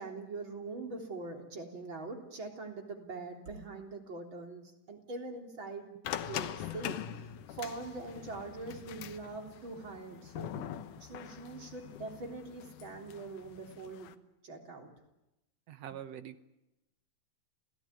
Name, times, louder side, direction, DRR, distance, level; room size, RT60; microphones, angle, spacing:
voice 1, 0.0-5.9 6.3-10.7 11.0-14.1 14.4-14.9, right 3 dB, 35° right, 2 dB, 4.0 m, -43 dB
sound 1, 6.0-14.1, left 10 dB, 70° left, 2.5 m, -43 dB
voice 2, 15.7-16.5, right 10 dB, 65° right, 11 dB, 1.7 m, -44 dB
28.0 x 17.5 x 9.7 m, 0.95 s
omnidirectional pair, 3.9 m